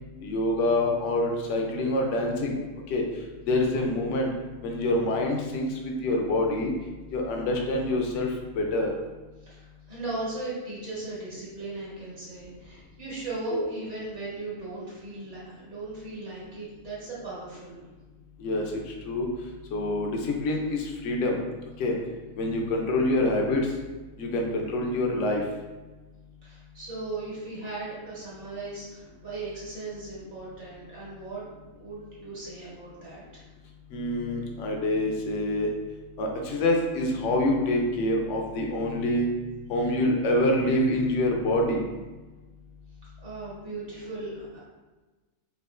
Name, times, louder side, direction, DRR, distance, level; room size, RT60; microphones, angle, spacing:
voice 1, 0.2-2.6 2.9-3.0 3.5-4.3 4.6-6.7 7.1-8.3 8.5-8.9 13.5-13.7 18.4-19.3 19.7-21.4 21.8-21.9 22.4-23.7 24.2-25.4 33.9-35.7 36.2-39.3 39.7-41.8, left 1 dB, 65° left, 1 dB, 0.9 m, -26 dB
voice 2, 9.4-17.8 26.4-31.4 31.8-33.5 43.2-44.6, right 2 dB, 60° right, -8 dB, 1.7 m, -37 dB
4.8 x 2.6 x 2.5 m, 1.2 s
omnidirectional pair, 1.4 m